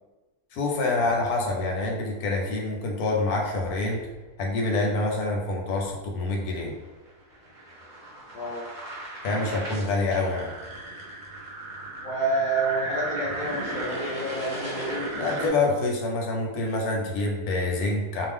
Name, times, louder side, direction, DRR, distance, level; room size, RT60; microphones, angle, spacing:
voice 1, 0.5-4.1 4.4-6.7 9.2-10.5 15.2-18.3, left 2 dB, 80° left, 0 dB, 1.1 m, -26 dB
sound 1, 1.3-2.0 3.6-4.2 6.0-15.5, right 2 dB, 50° right, 0.6 m, -36 dB
voice 2, 8.3-8.7 9.4-9.6 12.0-15.5, right 2 dB, 60° left, -3 dB, 0.4 m, -29 dB
2.5 x 2.0 x 3.4 m, 1.2 s
omnidirectional pair, 1.6 m